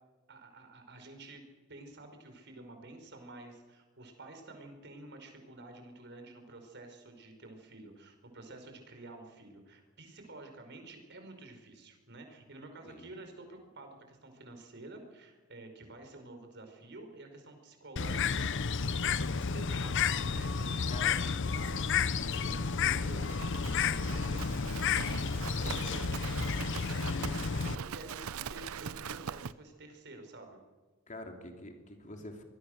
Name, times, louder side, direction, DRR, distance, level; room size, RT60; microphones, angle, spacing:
voice 1, 0.3-1.4 1.7-30.6, right 2 dB, 55° right, 5 dB, 5.0 m, -50 dB
voice 2, 12.8-13.2 20.9-21.2 31.1-32.4, left 1 dB, 35° left, 4 dB, 2.9 m, -46 dB
Bird, 18.0-27.8, left 5 dB, 60° left, 0.8 m, -31 dB
Livestock farm animals working animals, 23.1-29.5, right 7 dB, 85° right, 0.6 m, -42 dB
25.5 x 21.0 x 6.6 m, 1.3 s
head